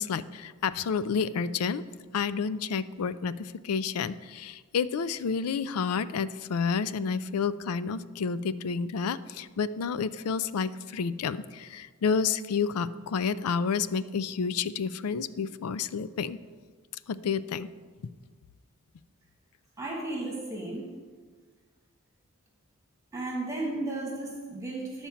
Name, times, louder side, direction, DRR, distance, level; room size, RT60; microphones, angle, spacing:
voice 1, 0.0-1.8 2.1-16.4 17.1-17.7, left 5 dB, 90° left, 15 dB, 0.4 m, -30 dB
voice 2, 19.8-21.0 23.1-25.1, right 2 dB, 15° right, -2 dB, 1.5 m, -34 dB
11.0 x 4.4 x 7.0 m, 1.5 s
head